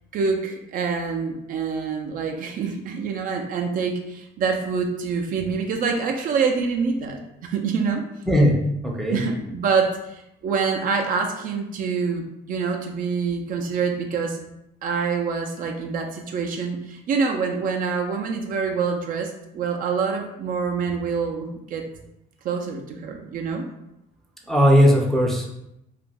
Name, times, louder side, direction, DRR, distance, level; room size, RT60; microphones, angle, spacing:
voice 1, 0.1-8.1 9.1-14.4 14.8-21.9 22.4-23.7, right 5 dB, 55° right, 3 dB, 0.4 m, -26 dB
voice 2, 8.3-8.6 8.8-9.2 24.5-25.5, equal, ahead, -2 dB, 0.5 m, -17 dB
2.4 x 2.1 x 3.3 m, 0.83 s
cardioid pair, 110°, 17 cm